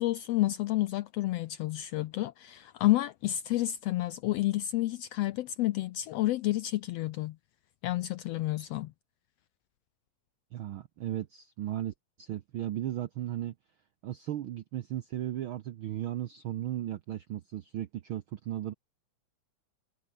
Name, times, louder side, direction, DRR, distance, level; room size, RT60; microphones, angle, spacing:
voice 1, 0.0-7.4 7.8-8.9, left 16 dB, 80° left, 1.4 m, -30 dB
voice 2, 10.5-13.5 14.0-18.7, right 12 dB, 80° right, 1.1 m, -36 dB
omnidirectional pair, 3.4 m